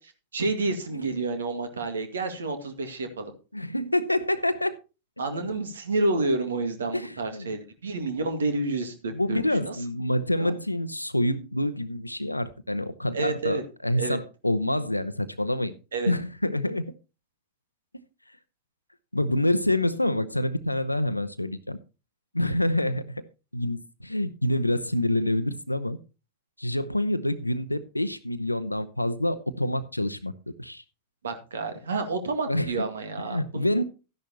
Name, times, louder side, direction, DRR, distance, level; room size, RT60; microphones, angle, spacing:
voice 1, 0.3-3.3 5.2-9.8 10.4-10.5 13.1-13.6 14.0-14.2 15.9-16.1 31.2-33.8, right 3 dB, 70° right, 2.0 m, -29 dB
voice 2, 3.5-4.7 6.9-7.5 9.1-15.7 16.1-16.9 19.1-21.8 22.3-23.2 23.5-26.0 26.6-30.3 30.6-30.8 32.5-32.9 33.2-33.8, left 1 dB, 85° left, 0.8 m, -27 dB
13.0 x 10.5 x 2.9 m
figure-of-eight pair, 90°, 0 cm